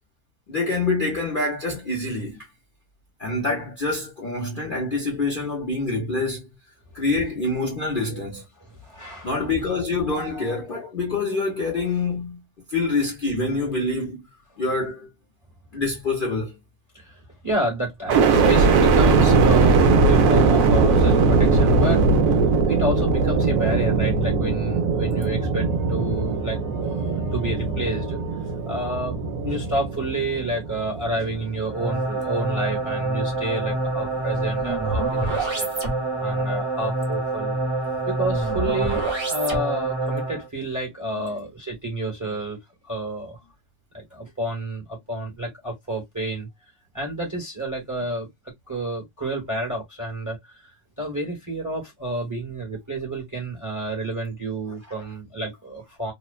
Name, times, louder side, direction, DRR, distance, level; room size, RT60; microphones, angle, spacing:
voice 1, 0.5-2.5 3.2-6.5 6.9-8.4 9.2-12.4 12.7-14.2 14.6-15.1 15.7-16.6 34.5-34.8 41.2-41.3, left 3 dB, 45° left, 0.7 m, -26 dB
voice 2, 8.1-9.3 10.1-10.9 16.9-35.7 36.1-37.6 38.1-42.6 42.8-43.4 43.9-46.5 46.9-50.7 51.0-56.1, right 1 dB, 15° right, 0.8 m, -30 dB
sound 1, 18.1-32.1 32.6-33.3, right 4 dB, 70° right, 0.8 m, -20 dB
sound 2, 31.7-40.5, right 2 dB, 35° right, 0.4 m, -26 dB
2.9 x 2.1 x 2.3 m
omnidirectional pair, 1.8 m